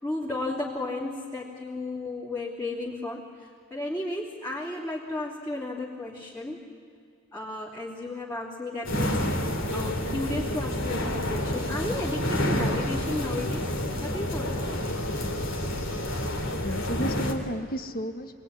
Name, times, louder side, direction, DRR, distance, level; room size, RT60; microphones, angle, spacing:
voice 1, 0.0-6.7 7.3-9.4 9.7-14.8, left 2 dB, 15° left, -8 dB, 3.0 m, -34 dB
sound 1, 8.8-17.3, left 1 dB, 65° left, 3.1 m, -29 dB
voice 2, 16.5-18.4, equal, 45° left, 8 dB, 1.5 m, -33 dB
26.5 x 20.0 x 9.7 m, 2.4 s
head